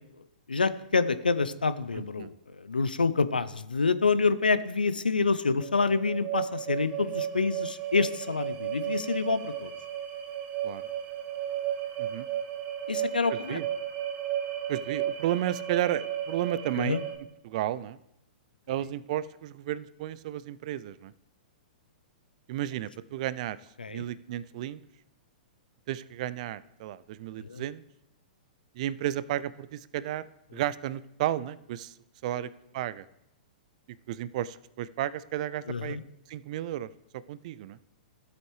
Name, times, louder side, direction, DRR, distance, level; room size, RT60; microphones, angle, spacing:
voice 1, 0.5-9.7 12.9-13.6 16.8-17.0 23.8-24.0 27.4-27.6 32.4-32.5 35.7-36.0, left 4 dB, 90° left, 15 dB, 0.5 m, -27 dB
sound 1, 5.6-17.2, right 10 dB, 30° right, 1.1 m, -34 dB
voice 2, 13.3-13.6 14.7-17.0 17.4-18.0 18.7-21.1 22.5-23.6 23.9-24.8 25.9-27.8 28.8-30.3 30.5-31.9 32.2-33.1 34.1-36.0 36.3-36.9 37.3-37.8, right 12 dB, 50° right, 17 dB, 0.4 m, -33 dB
13.5 x 8.1 x 3.2 m, 0.86 s
hypercardioid pair, 110°, 5 cm